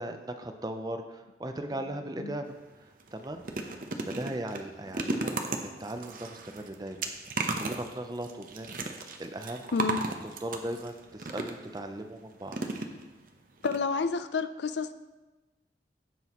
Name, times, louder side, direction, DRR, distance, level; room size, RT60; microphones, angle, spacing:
voice 1, 0.0-7.1 7.6-8.9 9.2-9.7 10.4-12.6, right 1 dB, 20° right, 6 dB, 0.5 m, -38 dB
sound 1, 2.5-2.6 3.0-11.8 12.5-13.3 13.6-13.8 14.0-14.1, right 3 dB, 50° right, 0.8 m, -35 dB
voice 2, 13.6-14.9, left 4 dB, 80° left, 11 dB, 0.5 m, -30 dB
16.0 x 6.2 x 3.0 m, 1.1 s
head